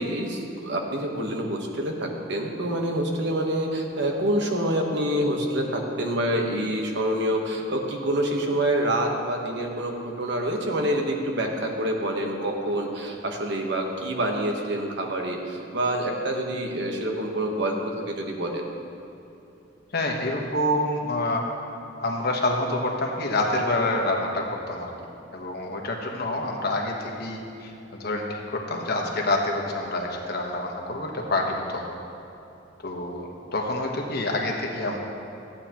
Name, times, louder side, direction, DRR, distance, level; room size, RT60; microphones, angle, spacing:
voice 1, 0.0-18.6, right 1 dB, 65° right, 2 dB, 1.2 m, -27 dB
voice 2, 19.9-21.4 22.0-24.9 25.3-31.9 32.8-35.0, left 2 dB, 60° left, 0 dB, 1.2 m, -27 dB
14.5 x 8.8 x 3.0 m, 2.9 s
head